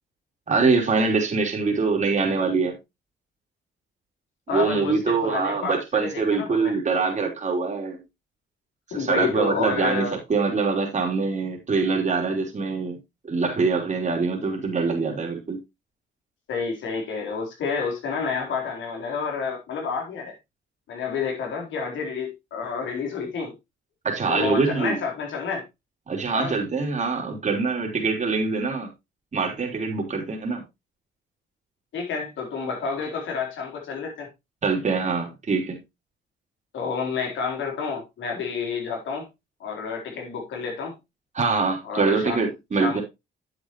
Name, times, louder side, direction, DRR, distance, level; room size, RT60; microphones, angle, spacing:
voice 1, 0.5-2.8 4.5-8.0 8.9-13.0 13.2-15.6 24.0-25.0 26.1-28.9 29.3-30.6 34.6-35.8 41.3-43.0, right 4 dB, 35° right, 3.5 m, -24 dB
voice 2, 4.5-6.7 8.9-10.2 16.5-20.3 20.9-23.5 24.3-25.6 26.3-26.6 31.9-34.3 36.7-39.3 39.6-40.9 41.8-42.5 42.8-43.0, left 5 dB, 70° left, 4.1 m, -29 dB
9.3 x 7.9 x 3.1 m
cardioid pair, 90°, 20 cm